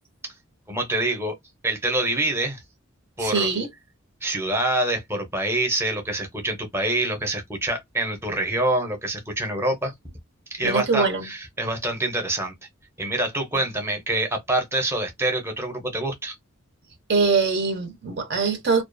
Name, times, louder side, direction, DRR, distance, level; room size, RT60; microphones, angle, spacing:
voice 1, 0.7-1.3 1.6-2.6 3.2-3.5 4.2-9.9 10.5-12.5 13.0-16.4, right 1 dB, 10° right, 0.6 m, -26 dB
voice 2, 3.2-3.7 10.6-11.3 17.1-18.8, right 4 dB, 55° right, 0.7 m, -22 dB
2.3 x 2.3 x 2.5 m
head